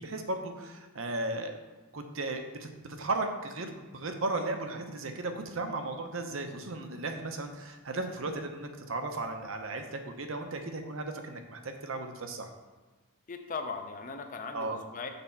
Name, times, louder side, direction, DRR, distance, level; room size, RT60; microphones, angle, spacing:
voice 1, 0.0-1.6 1.9-12.5 14.5-14.8, right 2 dB, 60° right, 5 dB, 0.7 m, -35 dB
voice 2, 13.3-15.1, left 4 dB, 35° left, 6 dB, 0.6 m, -38 dB
6.8 x 4.2 x 5.6 m, 1.3 s
head